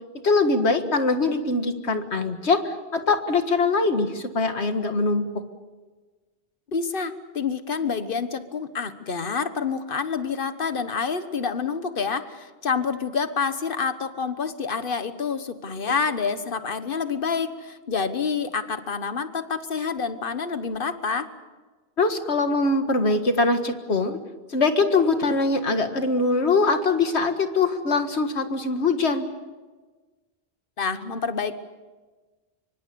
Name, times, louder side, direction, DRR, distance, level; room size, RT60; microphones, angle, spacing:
voice 1, 0.2-5.4 22.0-24.2 24.5-29.3, left 3 dB, 80° left, 7 dB, 2.0 m, -22 dB
voice 2, 6.7-21.3 30.8-31.5, left 5 dB, 55° left, 11 dB, 1.4 m, -28 dB
25.5 x 24.0 x 7.0 m, 1.3 s
omnidirectional pair, 1.1 m